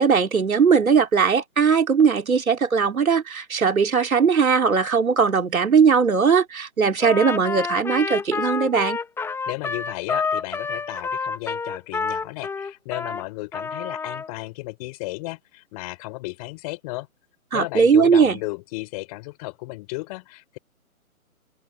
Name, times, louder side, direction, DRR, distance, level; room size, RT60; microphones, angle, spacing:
voice 1, 0.0-9.0 17.5-18.4, right 6 dB, 70° right, 3.8 m, -19 dB
Trumpet, 7.0-13.2 13.5-14.3, left 5 dB, 5° left, 3.5 m, -28 dB
voice 2, 9.2-17.1 17.5-20.6, left 23 dB, 25° left, 6.4 m, -34 dB
open air
hypercardioid pair, 150°, 43 cm